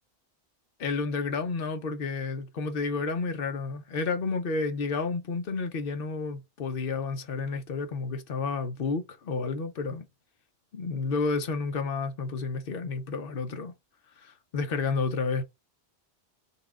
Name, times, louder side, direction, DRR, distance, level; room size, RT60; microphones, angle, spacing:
voice 1, 0.8-10.1 10.7-13.7 14.2-15.4, left 4 dB, 60° left, 1.0 m, -31 dB
5.6 x 2.4 x 3.9 m
omnidirectional pair, 1.1 m